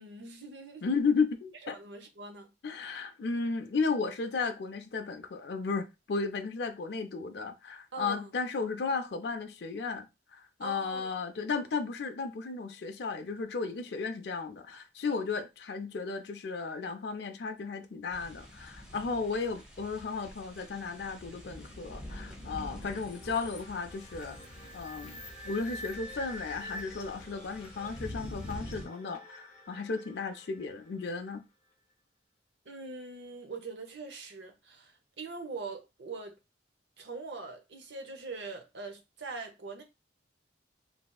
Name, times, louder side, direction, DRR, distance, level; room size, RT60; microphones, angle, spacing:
voice 1, 0.0-0.9 1.6-2.5 7.9-8.3 10.6-11.1 32.6-36.4 37.0-39.8, right 3 dB, 70° right, 0.8 m, -42 dB
voice 2, 0.8-1.7 2.6-10.1 10.3-24.4 24.7-31.4, left 4 dB, 60° left, 0.4 m, -34 dB
sound 1, 18.1-28.9, left 1 dB, 5° right, 0.8 m, -46 dB
sound 2, 22.7-31.4, left 1 dB, 40° left, 0.8 m, -48 dB
3.2 x 2.7 x 2.3 m
head